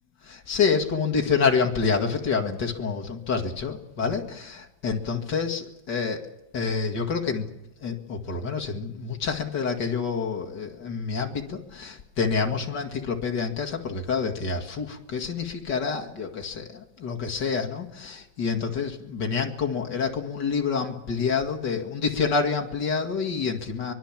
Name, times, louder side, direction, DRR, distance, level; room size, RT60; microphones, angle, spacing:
voice 1, 0.2-6.2 6.5-7.5 7.8-23.9, left 5 dB, 35° left, 3 dB, 2.0 m, -27 dB
24.0 x 22.5 x 7.5 m, 0.95 s
omnidirectional pair, 4.2 m